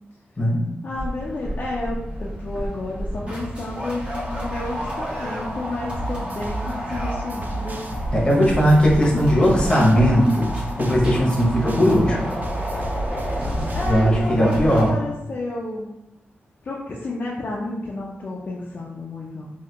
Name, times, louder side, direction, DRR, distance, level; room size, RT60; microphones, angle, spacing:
voice 1, 0.8-7.8 9.1-9.2 13.7-15.9 16.6-19.5, left 2 dB, 45° left, -4 dB, 0.5 m, -31 dB
sound 1, 0.9-14.9, equal, 25° right, 1.3 m, -30 dB
sound 2, 5.9-13.9, right 2 dB, 45° right, 0.4 m, -31 dB
voice 2, 8.1-10.5 10.8-12.3 13.9-14.9, equal, 20° left, -3 dB, 1.0 m, -18 dB
3.3 x 2.8 x 2.8 m, 0.95 s
wide cardioid pair, 110°, 4 cm